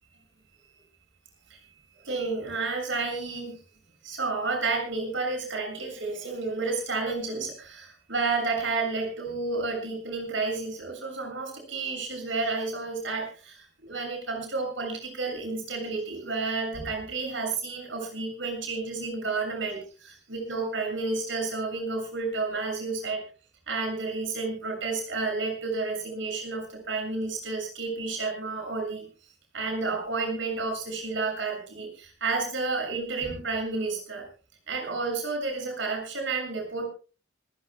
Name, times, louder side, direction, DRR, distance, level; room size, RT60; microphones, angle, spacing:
voice 1, 2.0-3.6 4.0-23.2 23.7-29.1 29.5-34.3 34.7-36.9, right 3 dB, 70° right, 3 dB, 7.0 m, -31 dB
26.0 x 15.5 x 2.3 m, 0.36 s
head